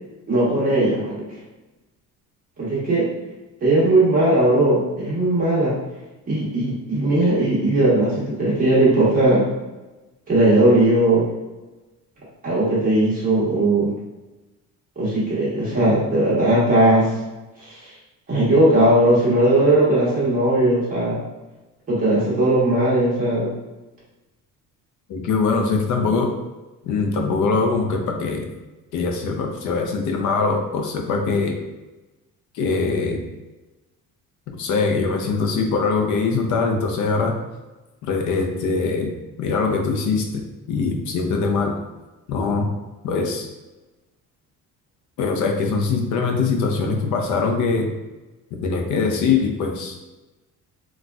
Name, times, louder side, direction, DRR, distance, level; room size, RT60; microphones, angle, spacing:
voice 1, 0.3-1.2 2.6-3.1 3.6-5.7 6.3-9.4 10.3-11.3 12.4-13.9 15.0-17.1 18.3-21.2 21.9-23.5, right 1 dB, 25° right, -8 dB, 1.1 m, -18 dB
voice 2, 25.1-26.3 26.8-28.5 28.9-31.6 32.5-33.2 34.6-37.4 38.1-39.1 39.4-41.7 42.3-42.7 43.0-43.5 45.2-47.9 48.5-50.0, left 4 dB, 60° left, 3 dB, 0.6 m, -22 dB
3.9 x 2.3 x 2.3 m, 1.1 s
cardioid pair, 170°, 33 cm